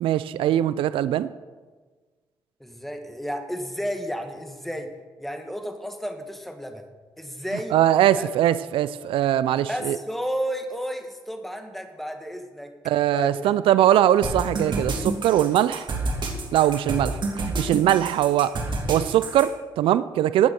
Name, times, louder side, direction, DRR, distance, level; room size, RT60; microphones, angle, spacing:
voice 1, 0.0-1.3 7.7-10.0 12.9-15.9 16.5-17.2 17.6-18.5 18.9-20.5, right 11 dB, 80° right, 15 dB, 0.4 m, -21 dB
voice 2, 2.6-4.9 5.2-6.9 7.2-7.7 8.1-8.3 9.7-12.7 13.1-13.5, equal, ahead, 5 dB, 1.9 m, -32 dB
sound 1, 14.2-19.5, right 2 dB, 60° right, 2.5 m, -28 dB
14.5 x 9.0 x 4.4 m, 1.4 s
supercardioid pair, 50°, 9 cm